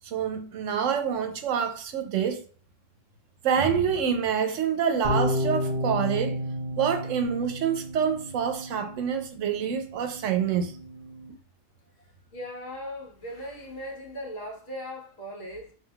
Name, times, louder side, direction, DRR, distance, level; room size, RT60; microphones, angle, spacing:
voice 1, 0.0-2.4 3.4-6.4 6.8-10.7, right 7 dB, 80° right, 1.0 m, -27 dB
sound 1, 5.0-11.3, equal, 45° right, 1.0 m, -32 dB
voice 2, 12.3-15.7, equal, 55° left, 1.2 m, -38 dB
5.6 x 2.7 x 2.2 m
omnidirectional pair, 1.3 m